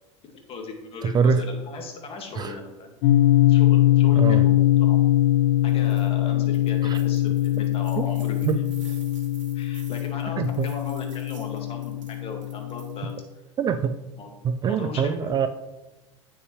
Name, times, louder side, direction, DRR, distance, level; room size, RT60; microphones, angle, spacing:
voice 1, 0.2-2.9 3.5-5.0 5.6-8.5 8.8-8.9 9.5-13.1 14.2-14.3 14.7-15.5, left 4 dB, 35° left, 3 dB, 1.9 m, -38 dB
voice 2, 1.0-1.4 2.4-2.6 4.1-4.4 6.8-7.0 8.0-8.1 8.4-8.6 10.4-10.7 13.6-14.0 14.4-15.5, right 6 dB, 25° right, 11 dB, 0.4 m, -24 dB
sound 1, 3.0-13.2, left 14 dB, 70° left, 0.6 m, -22 dB
sound 2, 5.6-6.1 6.5-13.2, right 6 dB, 80° right, 1.6 m, -51 dB
9.0 x 6.5 x 3.1 m, 1.0 s
hypercardioid pair, 100°, 16 cm